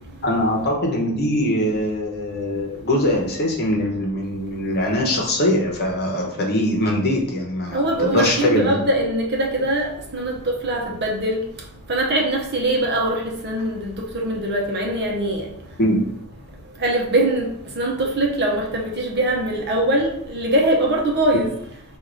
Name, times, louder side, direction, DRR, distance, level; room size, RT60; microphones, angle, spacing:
voice 1, 0.2-8.8 15.8-16.0, left 1 dB, 45° left, 1.0 m, -22 dB
voice 2, 7.7-11.4 11.9-15.5 16.8-17.5 17.8-21.5, right 1 dB, 50° right, 0.9 m, -22 dB
4.7 x 2.6 x 3.8 m
head